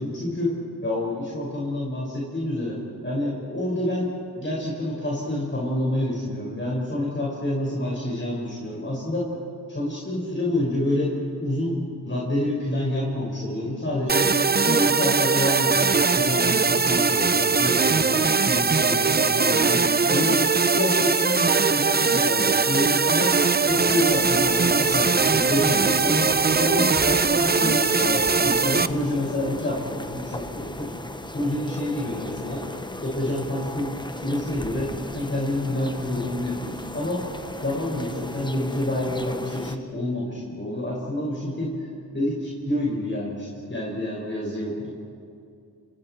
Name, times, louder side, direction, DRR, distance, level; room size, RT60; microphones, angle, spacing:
voice 1, 0.0-9.3 9.7-20.5 20.7-30.9 31.3-32.6 33.0-37.3 37.6-41.9 42.1-44.9, left 1 dB, 30° left, -4 dB, 5.6 m, -28 dB
sound 1, 14.1-28.9, right 4 dB, 25° right, 0.7 m, -21 dB
sound 2, 23.7-39.8, left 2 dB, 10° left, 1.2 m, -36 dB
28.5 x 28.0 x 4.6 m, 2.5 s
cardioid pair, 65°, 40 cm